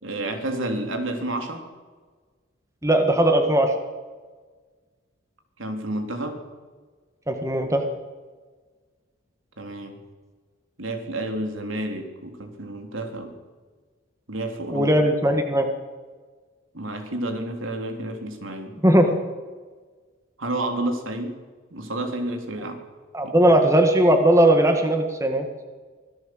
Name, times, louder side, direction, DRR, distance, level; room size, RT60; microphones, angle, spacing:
voice 1, 0.0-1.6 5.6-6.4 9.6-10.0 10.8-13.3 14.3-15.0 16.7-18.8 20.4-21.4 21.7-22.8 23.2-23.3, right 1 dB, 75° right, 5 dB, 3.5 m, -30 dB
voice 2, 2.8-3.7 7.3-7.8 14.7-15.7 18.8-19.1 23.1-25.5, right 1 dB, 15° right, 5 dB, 1.7 m, -18 dB
25.0 x 16.5 x 7.9 m, 1.4 s
head